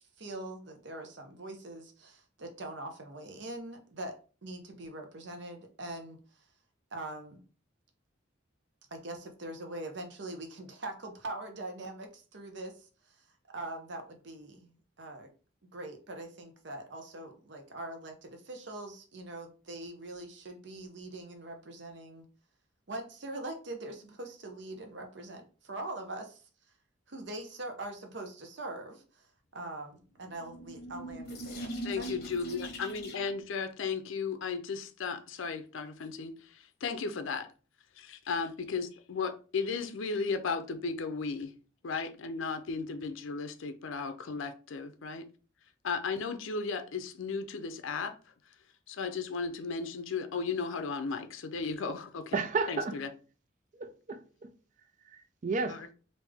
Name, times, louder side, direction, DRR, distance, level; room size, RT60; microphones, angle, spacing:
voice 1, 0.0-6.2 6.9-7.4 8.9-12.9 13.5-14.7 15.0-15.3 15.7-22.3 22.9-26.4 27.1-29.2 29.5-32.1, right 2 dB, 60° right, 0.7 m, -42 dB
sound 1, 30.2-33.4, right 1 dB, 50° left, 1.0 m, -41 dB
voice 2, 31.8-36.4 36.8-37.5 38.0-41.5 41.8-45.2 45.8-48.2 48.9-52.3 52.7-53.1 55.7-55.9, left 5 dB, 75° left, 0.5 m, -35 dB
voice 3, 52.3-53.0 53.8-54.5 55.1-55.9, right 4 dB, 40° right, 0.4 m, -33 dB
3.5 x 2.6 x 3.4 m
head